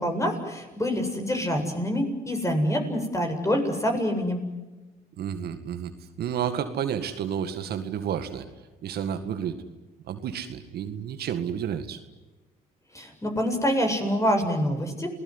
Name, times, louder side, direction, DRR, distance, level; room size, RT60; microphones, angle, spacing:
voice 1, 0.0-4.4 12.9-15.1, equal, 20° left, 4 dB, 7.9 m, -26 dB
voice 2, 5.2-5.9 6.2-8.5 8.8-9.6 10.0-12.0, right 8 dB, 70° right, 8 dB, 2.0 m, -31 dB
28.5 x 19.0 x 9.9 m, 1.2 s
supercardioid pair, 65°, 17 cm